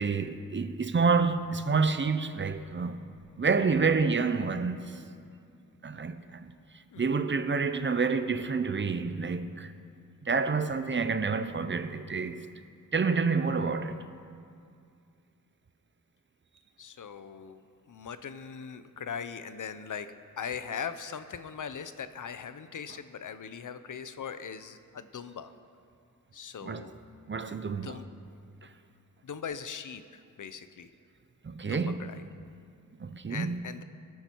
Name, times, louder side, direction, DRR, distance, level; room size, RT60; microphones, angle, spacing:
voice 1, 0.0-3.0 3.4-5.0 5.8-6.5 7.0-9.7 10.2-12.5 12.9-14.0 26.6-26.9 27.3-28.0 31.4-32.1 33.0-33.6, right 4 dB, 35° right, 0.7 m, -28 dB
voice 2, 16.8-25.5 26.3-26.9 27.8-28.1 29.2-30.9 31.6-32.2 33.3-33.8, left 7 dB, 65° left, 0.8 m, -40 dB
23.5 x 10.5 x 4.6 m
wide cardioid pair, 135°, 34 cm